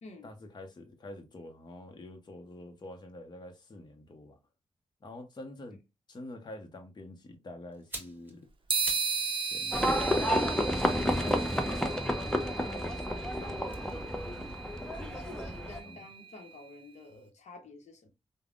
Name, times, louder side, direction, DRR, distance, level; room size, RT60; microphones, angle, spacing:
voice 1, 0.2-4.4 5.0-5.8 6.1-8.5 9.3-13.9 14.7-15.6 15.8-16.0, left 1 dB, 40° left, 0.8 m, -47 dB
sound 1, 7.7-9.2 9.5-12.8 13.6-15.6 15.9-16.1, right 1 dB, 15° right, 1.5 m, -48 dB
sound 2, 8.7-16.4, right 5 dB, 45° right, 0.5 m, -36 dB
Livestock farm animals working animals, 9.7-15.8, equal, 5° left, 0.6 m, -31 dB
voice 2, 14.9-18.1, left 3 dB, 75° left, 0.8 m, -50 dB
3.3 x 2.1 x 2.4 m
cardioid pair, 65°, 12 cm